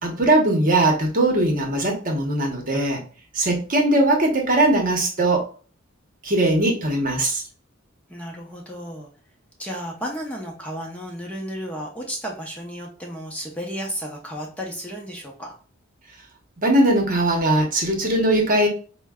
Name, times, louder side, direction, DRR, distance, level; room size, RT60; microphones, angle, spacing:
voice 1, 0.0-3.0 3.3-5.4 6.2-7.4 16.6-18.7, right 1 dB, 40° right, 1 dB, 0.9 m, -20 dB
voice 2, 8.1-9.1 9.6-15.5, equal, 5° left, -1 dB, 0.7 m, -33 dB
5.1 x 2.2 x 3.5 m, 0.40 s
head